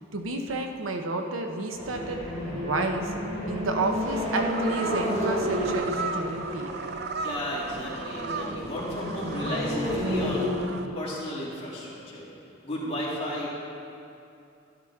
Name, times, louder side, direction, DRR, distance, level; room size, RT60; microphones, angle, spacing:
voice 1, 0.1-3.1 3.5-6.7, right 2 dB, 90° right, 4 dB, 0.9 m, -31 dB
sound 1, 1.8-10.5, equal, 35° right, 2.4 m, -31 dB
sound 2, 3.9-10.9, right 4 dB, 55° right, 0.6 m, -36 dB
voice 2, 7.2-10.5 10.9-12.3 12.6-13.5, left 1 dB, 30° left, -7 dB, 2.8 m, -34 dB
12.0 x 12.0 x 3.7 m, 2.7 s
head